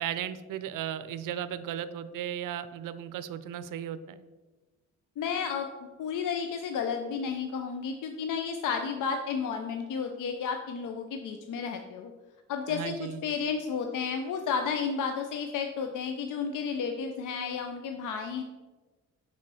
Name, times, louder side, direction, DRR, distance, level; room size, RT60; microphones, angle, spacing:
voice 1, 0.0-4.2 12.7-13.2, right 10 dB, 90° right, 13 dB, 0.5 m, -36 dB
voice 2, 5.2-12.1 12.5-18.4, left 6 dB, 75° left, 5 dB, 0.6 m, -32 dB
5.3 x 4.3 x 5.5 m, 1.2 s
cardioid pair, 130°, 31 cm